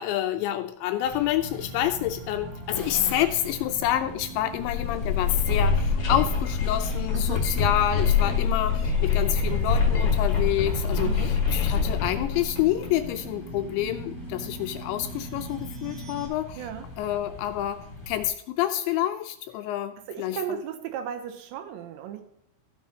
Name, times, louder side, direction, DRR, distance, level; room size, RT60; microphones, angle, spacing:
voice 1, 0.0-16.6 17.0-17.8 18.1-20.6, left 12 dB, 85° left, 8 dB, 2.7 m, -28 dB
sound 1, 1.0-18.3, left 3 dB, 15° left, 1.9 m, -42 dB
sound 2, 1.4-16.3, right 3 dB, 60° right, 1.8 m, -42 dB
sound 3, 4.5-13.1, left 5 dB, 50° left, 1.7 m, -25 dB
voice 2, 7.1-7.5 11.0-11.3 16.6-16.9 20.1-22.2, right 9 dB, 75° right, 7 dB, 3.0 m, -35 dB
14.0 x 7.3 x 2.9 m, 0.74 s
omnidirectional pair, 5.5 m